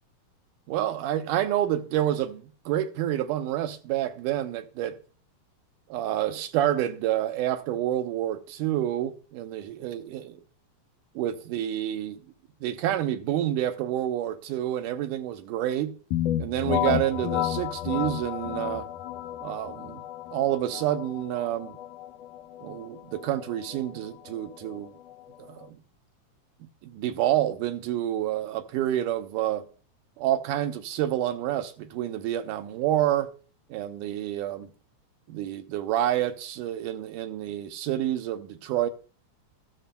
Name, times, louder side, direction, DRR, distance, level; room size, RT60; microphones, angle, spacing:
voice 1, 0.7-5.0 5.9-10.4 11.2-12.2 12.6-15.9 16.4-18.9 19.4-20.0 20.3-21.8 22.6-24.9 25.4-25.8 26.8-29.7 30.2-33.3 33.7-34.7 35.3-38.9, right 12 dB, 85° right, 2.4 m, -28 dB
sound 1, 16.1-25.7, left 12 dB, 85° left, 2.2 m, -32 dB
14.0 x 12.5 x 2.2 m
omnidirectional pair, 3.6 m